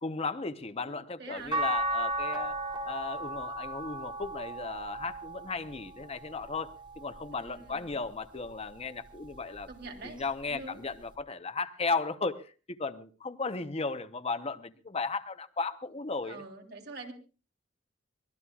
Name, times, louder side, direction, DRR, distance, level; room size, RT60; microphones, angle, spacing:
voice 1, 0.0-9.7 10.0-12.5 12.8-16.4, left 4 dB, 35° left, 0.8 m, -35 dB
voice 2, 0.8-1.6 7.3-8.0 9.7-10.8 16.2-17.1, right 3 dB, 60° right, 3.5 m, -45 dB
sound 1, 1.5-7.8 8.4-9.7 11.1-11.2, right 1 dB, 25° right, 4.8 m, -36 dB
24.0 x 18.5 x 2.4 m
head